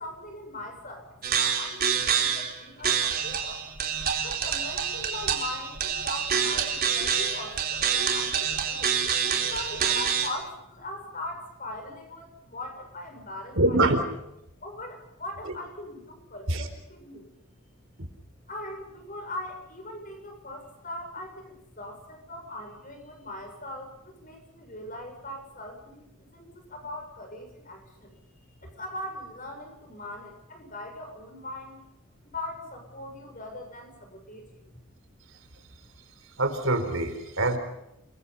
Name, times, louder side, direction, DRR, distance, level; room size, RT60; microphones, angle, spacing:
voice 1, 0.0-3.6 4.2-14.1 14.6-17.3 18.5-28.1 28.6-31.8 32.2-34.6, left 1 dB, 35° left, 4 dB, 7.6 m, -40 dB
sound 1, 1.2-2.6 2.8-10.3, right 7 dB, 40° right, 3.9 m, -27 dB
voice 2, 13.6-14.0 16.5-16.7 36.4-37.6, right 2 dB, 60° right, 7 dB, 4.3 m, -24 dB
30.0 x 23.0 x 5.7 m, 0.84 s
head